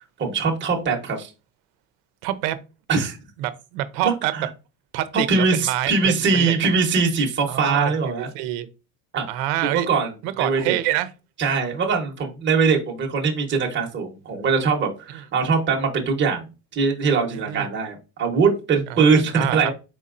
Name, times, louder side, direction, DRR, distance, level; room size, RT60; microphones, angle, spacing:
voice 1, 0.2-1.3 2.9-3.2 4.0-4.5 5.3-8.3 9.1-9.3 9.6-10.1 10.4-10.8 11.4-16.4 16.7-19.7, right 4 dB, 25° right, 1.0 m, -22 dB
voice 2, 2.2-2.6 3.4-4.3 4.9-6.6 7.5-8.7 9.3-9.9 10.2-11.1 17.5-17.7 18.9-19.7, right 13 dB, 75° right, 0.8 m, -26 dB
4.6 x 4.1 x 2.5 m
cardioid pair, 135°, 48 cm